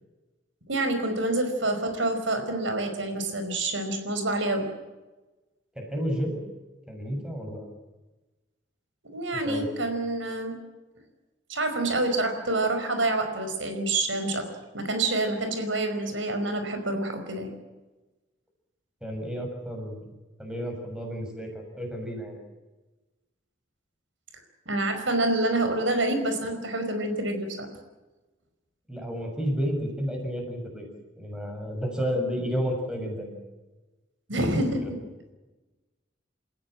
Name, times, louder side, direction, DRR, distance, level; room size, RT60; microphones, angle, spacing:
voice 1, 0.7-4.7 9.1-10.6 11.5-14.5 14.7-17.5 24.6-27.7 34.3-34.8, right 2 dB, 85° right, 6 dB, 5.1 m, -27 dB
voice 2, 5.7-6.4 6.9-7.7 9.4-9.7 19.0-20.1 20.4-22.4 28.9-30.9 31.2-33.4 34.3-34.4 34.8-34.9, equal, 5° right, 2 dB, 6.7 m, -31 dB
29.5 x 16.0 x 7.7 m, 1.1 s
head